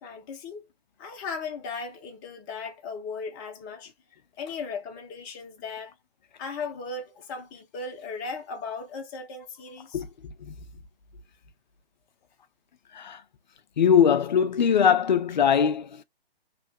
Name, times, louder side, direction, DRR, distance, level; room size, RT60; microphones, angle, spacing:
voice 1, 0.0-0.6 1.0-3.9 4.4-5.9 6.4-10.0, left 4 dB, 20° left, 0.9 m, -37 dB
voice 2, 9.9-10.6 12.9-13.2 13.8-16.0, left 7 dB, 50° left, 0.6 m, -22 dB
3.4 x 3.2 x 2.2 m
figure-of-eight pair, 130°, 31 cm